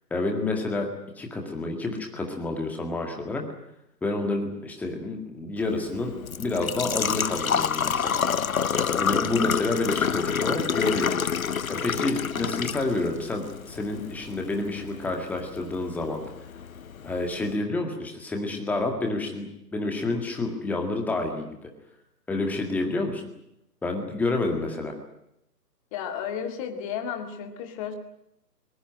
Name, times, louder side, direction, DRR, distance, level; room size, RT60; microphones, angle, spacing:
voice 1, 0.1-0.9 1.2-3.4 4.0-6.1 6.4-8.5 9.0-11.1 11.7-16.2 17.0-19.5 19.7-21.6 22.3-23.2 23.8-24.9, left 2 dB, 5° left, 2 dB, 2.0 m, -29 dB
Engine / Trickle dribble / Fill (with liquid), 5.6-17.5, left 7 dB, 55° left, 1.0 m, -29 dB
voice 2, 25.9-27.9, left 8 dB, 20° left, 5 dB, 2.2 m, -33 dB
22.5 x 21.0 x 9.0 m, 0.80 s
figure-of-eight pair, 140°, 49 cm